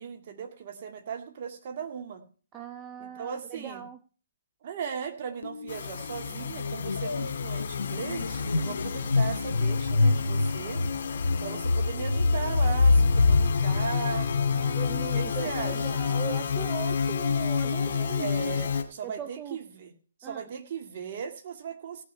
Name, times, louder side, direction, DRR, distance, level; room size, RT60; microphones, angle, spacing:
voice 1, 0.0-2.2 3.0-3.8 4.6-10.8 11.4-14.3 15.1-16.4 18.2-19.9 20.2-22.0, right 7 dB, 45° right, 6 dB, 2.0 m, -38 dB
voice 2, 2.5-4.0 14.5-18.3 19.0-19.6 20.2-20.5, right 9 dB, 20° right, 11 dB, 0.5 m, -40 dB
sound 1, 5.4-5.7 6.0-14.8, left 3 dB, 90° left, 0.7 m, -26 dB
sound 2, 5.7-18.8, left 6 dB, 55° left, 2.2 m, -30 dB
17.0 x 6.2 x 5.6 m, 0.39 s
hypercardioid pair, 145°, 0 cm